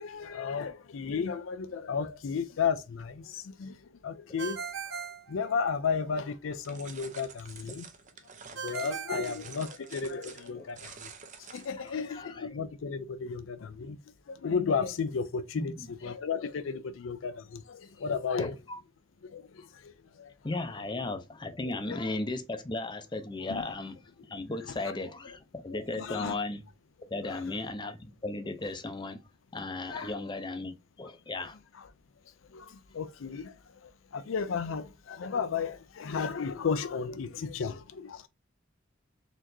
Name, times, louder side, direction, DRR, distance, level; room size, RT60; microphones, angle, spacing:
voice 1, 0.0-4.6 4.9-5.0 5.3-7.9 8.6-11.1 11.4-14.0 14.3-18.5 19.2-20.3 21.6-22.0 23.5-23.6 25.3-25.4 25.7-26.4 27.3-27.4 29.9-30.2 31.4-31.5 31.7-31.9 32.5-38.3, left 5 dB, 85° left, 0.4 m, -34 dB
Ringtone, 4.4-6.1 8.6-10.2, right 6 dB, 75° right, 0.7 m, -39 dB
sound 1, 6.6-11.9, right 6 dB, 40° right, 0.6 m, -48 dB
voice 2, 11.8-12.4 15.5-15.9 18.4-18.8 20.4-24.0 24.3-26.6 27.1-29.2 29.5-31.6, left 2 dB, 25° left, 0.5 m, -36 dB
4.3 x 2.9 x 2.6 m
head